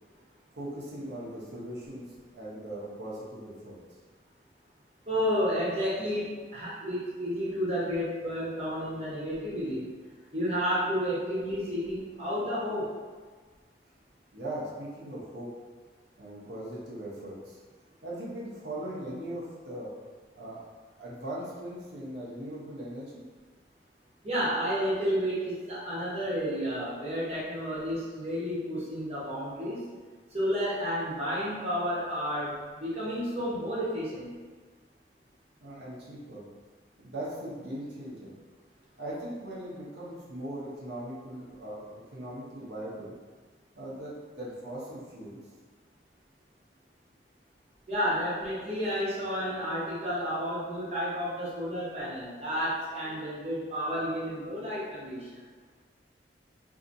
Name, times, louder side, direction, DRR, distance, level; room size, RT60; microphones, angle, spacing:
voice 1, 0.5-3.8 14.3-15.5 16.2-17.6 18.0-19.9 20.4-20.6 21.0-23.2 35.6-36.4 37.0-38.3 39.0-43.1 43.7-45.4, right 1 dB, 70° right, -6 dB, 0.8 m, -39 dB
voice 2, 5.1-9.9 10.3-12.9 24.2-29.8 30.3-34.3 47.9-55.4, equal, 35° right, -9 dB, 1.0 m, -31 dB
2.7 x 2.6 x 2.6 m, 1.4 s
head